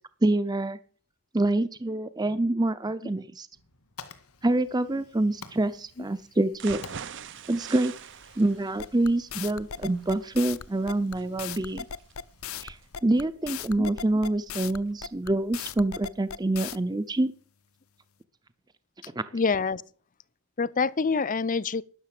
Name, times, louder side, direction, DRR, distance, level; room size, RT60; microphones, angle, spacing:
voice 1, 0.2-0.8 1.3-3.5 4.4-6.8 7.5-7.9 8.4-11.8 12.6-12.8 13.0-17.3 19.1-19.3, right 2 dB, 20° right, 0.7 m, -26 dB
Fire, 3.5-13.0, left 5 dB, 85° left, 2.1 m, -52 dB
sound 1, 6.5-14.5 14.9-15.0 15.4-15.5, right 7 dB, 55° right, 0.7 m, -44 dB
sound 2, 8.8-16.8, left 8 dB, 70° left, 0.8 m, -37 dB
voice 2, 19.3-19.8 20.6-21.8, left 4 dB, 35° left, 0.6 m, -26 dB
12.5 x 10.5 x 7.6 m
head